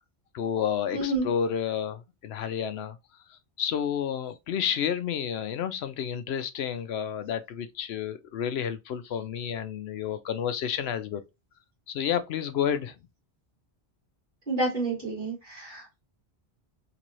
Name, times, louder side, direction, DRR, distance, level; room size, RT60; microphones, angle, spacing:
voice 1, 0.3-3.0 3.6-11.2 11.9-12.9, left 8 dB, 75° left, 0.8 m, -30 dB
voice 2, 0.9-1.3 14.5-16.0, right 2 dB, 45° right, 2.1 m, -29 dB
3.9 x 2.7 x 3.0 m
omnidirectional pair, 1.1 m